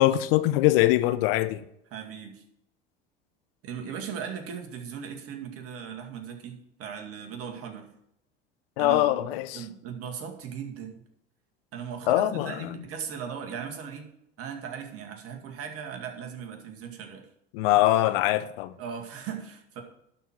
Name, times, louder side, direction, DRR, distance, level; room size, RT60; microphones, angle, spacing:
voice 1, 0.0-1.6 8.8-9.6 12.1-12.7 17.5-18.7, left 15 dB, 70° left, 0.8 m, -23 dB
voice 2, 1.9-2.4 3.6-7.9 8.8-9.3 9.5-11.0 11.7-14.1 14.4-17.3 18.8-19.8, right 7 dB, 50° right, 2.2 m, -38 dB
11.5 x 4.6 x 7.4 m
hypercardioid pair, 75°, 30 cm